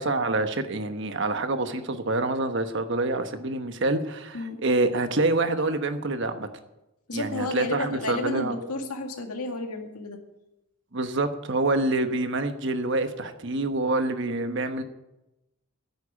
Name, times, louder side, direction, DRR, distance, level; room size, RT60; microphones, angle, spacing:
voice 1, 0.0-6.5 7.1-8.6 10.9-14.8, right 2 dB, 55° right, 8 dB, 1.1 m, -26 dB
voice 2, 7.1-10.2, left 2 dB, 90° left, 4 dB, 2.1 m, -32 dB
10.5 x 8.7 x 9.9 m, 0.94 s
head